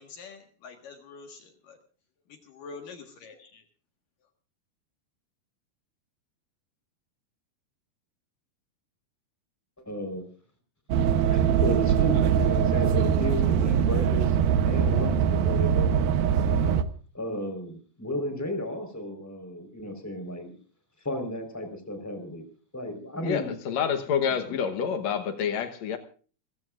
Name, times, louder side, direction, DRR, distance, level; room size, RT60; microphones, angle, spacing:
voice 1, 0.0-1.8 2.3-3.6, left 4 dB, 60° left, 4 dB, 2.9 m, -46 dB
voice 2, 9.9-10.2 11.3-14.4 14.6-16.8 17.1-20.5 21.0-22.4 22.7-23.6 24.5-24.6, equal, 5° left, 6 dB, 3.7 m, -33 dB
sound 1, 10.9-16.8, right 8 dB, 70° right, 2.4 m, -22 dB
voice 3, 23.2-26.0, left 7 dB, 90° left, 7 dB, 1.5 m, -28 dB
28.0 x 15.0 x 2.5 m, 0.40 s
omnidirectional pair, 4.9 m